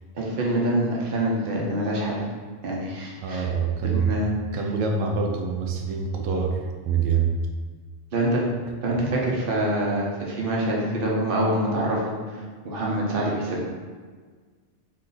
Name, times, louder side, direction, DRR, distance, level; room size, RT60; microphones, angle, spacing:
voice 1, 0.1-2.2 2.6-3.5 3.8-4.3 8.1-8.4 8.8-12.1 12.6-13.7, right 1 dB, 50° right, -3 dB, 1.0 m, -25 dB
voice 2, 3.2-4.2 4.5-7.3 8.9-9.0, right 6 dB, 90° right, 2 dB, 1.0 m, -25 dB
3.9 x 3.2 x 4.0 m, 1.5 s
omnidirectional pair, 1.3 m